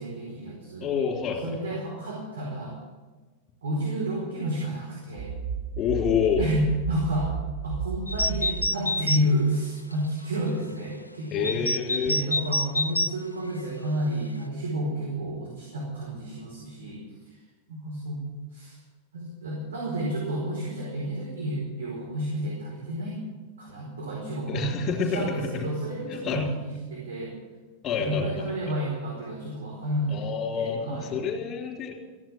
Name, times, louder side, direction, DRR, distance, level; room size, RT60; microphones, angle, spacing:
voice 1, 0.0-0.9 1.4-2.8 3.6-5.3 6.4-7.3 7.6-11.7 12.0-17.4 17.7-18.8 19.1-23.2 23.6-27.3 28.0-30.3 30.5-31.1, right 1 dB, 65° right, -5 dB, 4.9 m, -30 dB
voice 2, 0.8-1.6 5.8-6.5 11.3-12.2 24.5-25.7 26.1-26.4 27.8-28.7 30.1-31.9, left 6 dB, 30° left, 2 dB, 3.4 m, -28 dB
sound 1, 5.2-8.7, right 6 dB, 40° right, 0.7 m, -33 dB
sound 2, 8.1-9.2 9.9-10.0 11.4-13.1, left 1 dB, 85° left, 0.4 m, -27 dB
15.0 x 10.5 x 7.6 m, 1.3 s
figure-of-eight pair, 90°, 0 cm